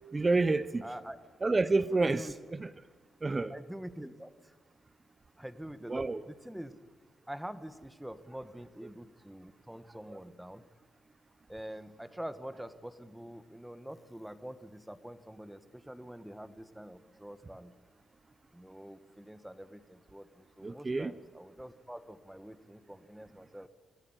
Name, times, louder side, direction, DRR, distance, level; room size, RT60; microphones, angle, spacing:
voice 1, 0.1-0.8 1.4-2.7 3.2-3.5 5.9-6.2 10.1-10.2 20.6-21.1, right 3 dB, 20° right, 15 dB, 0.7 m, -29 dB
voice 2, 0.8-1.2 2.0-2.3 3.5-4.5 5.4-6.7 7.3-10.6 11.5-17.7 18.5-23.7, equal, 5° right, 11 dB, 1.5 m, -45 dB
26.5 x 18.0 x 9.8 m, 1.4 s
cardioid pair, 135°, 0 cm